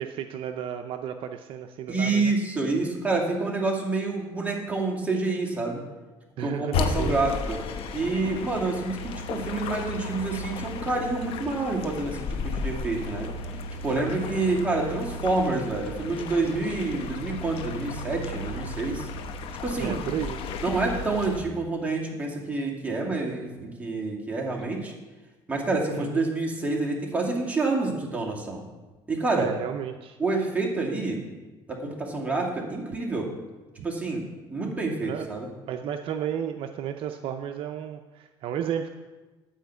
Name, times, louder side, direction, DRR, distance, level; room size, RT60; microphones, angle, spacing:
voice 1, 0.0-2.3 6.4-7.2 19.8-20.4 25.9-26.3 29.3-30.2 33.8-33.9 35.0-35.3 35.7-38.9, right 9 dB, 55° right, 6 dB, 0.6 m, -33 dB
voice 2, 1.9-5.8 6.4-7.6 7.9-13.3 13.8-19.1 19.6-20.0 20.6-24.9 25.5-28.6 29.1-29.5 30.2-31.2 31.7-33.3 33.8-35.5, right 3 dB, 15° right, -1 dB, 2.2 m, -28 dB
sound 1, 6.7-21.4, left 3 dB, 60° left, 1.0 m, -34 dB
10.0 x 5.0 x 8.2 m, 1.2 s
cardioid pair, 115°, 11 cm